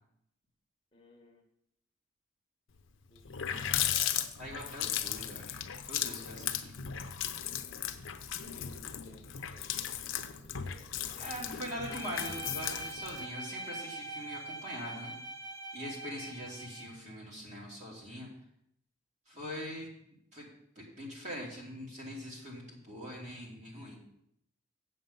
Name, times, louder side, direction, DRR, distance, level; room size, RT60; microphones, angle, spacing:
voice 1, 0.9-1.4 3.1-4.3 8.5-9.2 9.5-11.3, left 1 dB, 25° left, 0 dB, 1.2 m, -59 dB
Water tap faucet, 2.8-2.9 3.2-13.3, left 10 dB, 75° left, 0.7 m, -36 dB
voice 2, 4.4-6.8 11.2-15.1 15.7-18.3 19.3-19.9 20.3-20.5 20.7-24.0, equal, 35° right, -3 dB, 2.9 m, -43 dB
Bowed string instrument, 11.7-17.0, right 2 dB, 75° right, 1.0 m, -43 dB
7.9 x 7.7 x 5.5 m, 0.76 s
head